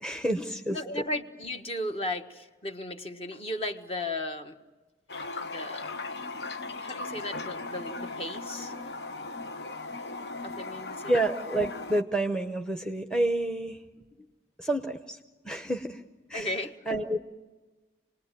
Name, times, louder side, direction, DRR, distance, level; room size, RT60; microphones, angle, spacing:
voice 1, 0.0-1.0 11.1-13.8 14.6-15.2 15.4-16.0 16.3-16.5 16.9-17.2, right 1 dB, 5° left, 5 dB, 0.8 m, -29 dB
voice 2, 0.7-4.6 5.4-5.9 6.8-8.7 10.4-11.2 16.3-17.0, left 1 dB, 35° left, 6 dB, 1.3 m, -35 dB
Toilet flush, 5.1-12.0, left 3 dB, 75° left, 0.8 m, -37 dB
28.0 x 20.0 x 9.0 m, 1.3 s
head